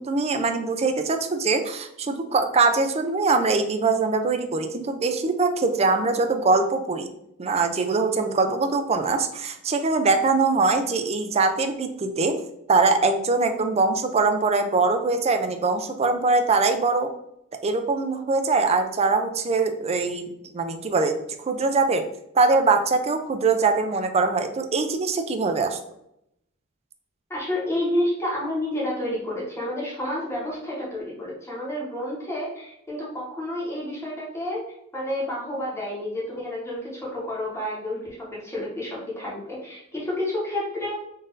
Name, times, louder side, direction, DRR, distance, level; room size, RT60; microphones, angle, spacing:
voice 1, 0.0-7.1 7.4-12.4 12.7-17.1 17.6-21.2 21.5-22.1 22.3-25.8, right 3 dB, 30° right, 7 dB, 0.4 m, -22 dB
voice 2, 27.3-34.7 34.9-40.9, left 1 dB, 15° left, -5 dB, 1.0 m, -30 dB
3.9 x 2.6 x 3.8 m, 0.79 s
head